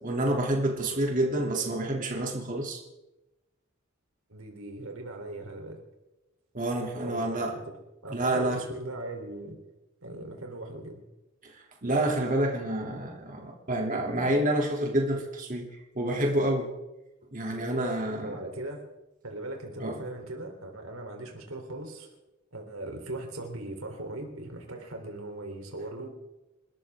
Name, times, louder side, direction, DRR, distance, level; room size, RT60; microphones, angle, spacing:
voice 1, 0.0-2.8 6.5-7.5 8.1-8.6 11.8-15.7 15.9-16.7 17.3-18.3 19.8-20.0, right 1 dB, 40° right, 0 dB, 2.8 m, -28 dB
voice 2, 4.3-5.8 7.0-7.6 8.0-9.6 10.0-11.0 18.2-18.8 19.2-22.1 22.5-26.1, right 2 dB, 90° right, 3 dB, 3.5 m, -39 dB
28.0 x 13.5 x 3.7 m, 0.99 s
head